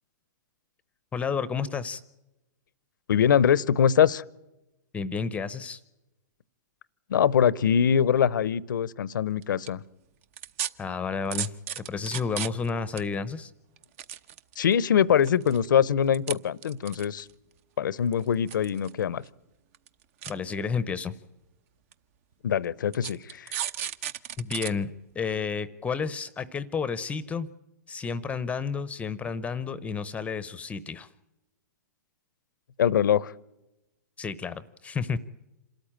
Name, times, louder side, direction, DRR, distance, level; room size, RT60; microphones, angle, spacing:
voice 1, 1.1-2.0 4.9-5.8 10.8-13.5 20.3-21.1 24.4-24.9 25.1-27.5 27.9-31.1 34.2-35.2, left 5 dB, 10° left, 17 dB, 0.7 m, -31 dB
voice 2, 3.1-4.2 7.1-9.8 14.6-17.3 17.8-19.2 22.4-23.5 32.8-33.3, left 8 dB, 80° left, 22 dB, 0.7 m, -23 dB
sound 1, 9.4-9.7 10.4-10.7 11.3-12.7 13.0-13.1 13.8-14.7 15.2-15.7 16.1-16.3 16.6-17.3 18.1-18.9 19.2-19.3 19.7-19.9 20.2-20.3 21.1-21.2 21.9-22.0 22.9-24.7 25.1-25.2, right 10 dB, 45° right, 0.8 m, -33 dB
27.0 x 13.5 x 8.8 m, 0.98 s
hypercardioid pair, 140°, 10 cm